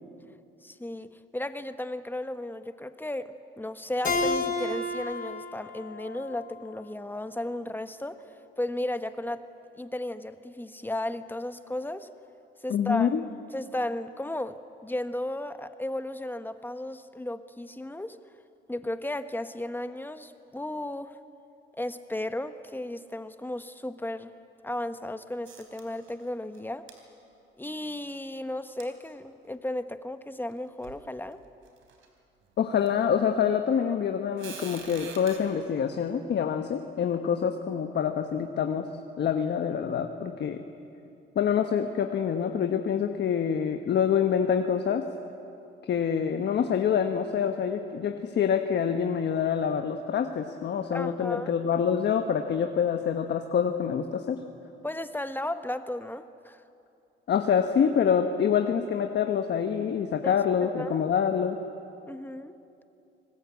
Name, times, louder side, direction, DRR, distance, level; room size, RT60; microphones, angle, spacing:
voice 1, 0.6-9.5 9.8-12.1 12.6-18.2 18.7-21.2 21.8-24.3 24.6-26.9 27.6-31.4 50.9-51.5 54.8-56.6 60.2-60.4 60.6-61.0 62.1-62.6, left 1 dB, 10° left, 10 dB, 1.1 m, -34 dB
Keyboard (musical), 4.0-7.3, left 2 dB, 40° left, 3.7 m, -32 dB
voice 2, 12.7-13.2 32.6-38.9 39.2-40.6 41.3-45.1 45.9-54.4 57.3-61.6, left 7 dB, 60° left, 5 dB, 1.3 m, -26 dB
sound 1, 25.5-26.3 26.5-26.6 26.9-27.0 28.8-28.9 29.7-29.8 30.5-30.6 30.8-31.1 31.7-32.1 32.9-33.0 34.4-35.4, right 6 dB, 80° right, 3.6 m, -44 dB
25.0 x 20.0 x 8.4 m, 2.7 s
cardioid pair, 90°, 20 cm